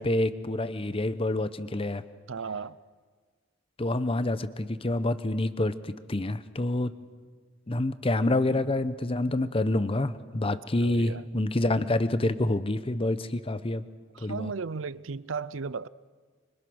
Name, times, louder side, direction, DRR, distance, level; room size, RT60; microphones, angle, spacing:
voice 1, 0.0-2.0 3.8-6.9 7.7-13.8 14.2-14.5, left 2 dB, 30° left, 0.9 m, -27 dB
voice 2, 2.3-2.8 10.8-11.2 14.1-15.9, right 5 dB, 85° right, 0.6 m, -35 dB
26.0 x 25.0 x 6.3 m
head